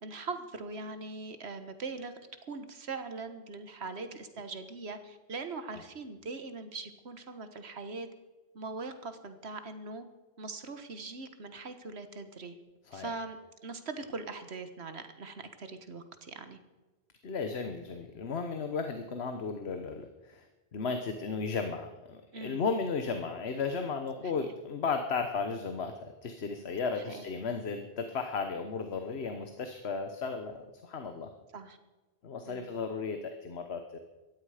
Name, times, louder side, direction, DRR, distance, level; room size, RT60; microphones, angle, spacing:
voice 1, 0.0-2.1 2.5-8.1 8.5-10.1 10.4-12.5 12.9-13.4 13.6-16.6 22.3-22.7 24.3-24.5 26.9-27.2 31.5-31.8 32.4-32.7, right 3 dB, 85° right, 9 dB, 1.6 m, -41 dB
voice 2, 17.2-31.3 32.2-34.0, left 4 dB, 80° left, 7 dB, 1.3 m, -35 dB
17.5 x 14.0 x 5.0 m, 1.2 s
omnidirectional pair, 1.1 m